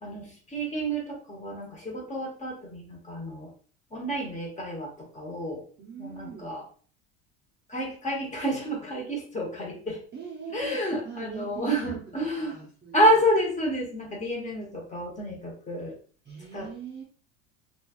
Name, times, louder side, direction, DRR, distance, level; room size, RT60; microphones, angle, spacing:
voice 1, 0.0-3.5 3.9-5.6 6.0-6.6 7.7-10.0 10.5-12.6 12.9-16.0 16.5-16.7, equal, 15° left, -1 dB, 0.9 m, -29 dB
voice 2, 5.8-6.5 10.1-13.2 16.3-17.0, right 5 dB, 25° right, -2 dB, 0.7 m, -41 dB
3.1 x 2.4 x 2.3 m, 0.42 s
supercardioid pair, 110°, 41 cm